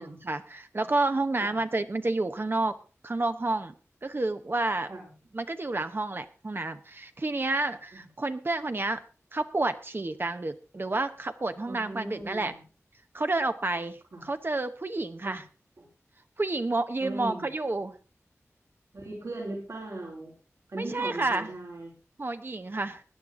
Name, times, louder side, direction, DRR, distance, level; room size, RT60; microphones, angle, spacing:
voice 1, 0.0-2.7 3.0-3.7 4.0-4.9 5.3-9.0 9.3-12.5 13.1-15.4 16.4-17.9 20.8-21.5 22.2-23.0, right 2 dB, 45° right, 9 dB, 0.9 m, -30 dB
voice 2, 11.6-12.6 14.1-14.2 15.2-15.4 15.8-15.9 17.0-17.5 18.9-20.3 20.7-21.9, right 2 dB, 75° right, -2 dB, 4.2 m, -38 dB
17.0 x 10.5 x 3.7 m, 0.35 s
wide cardioid pair, 75°, 5 cm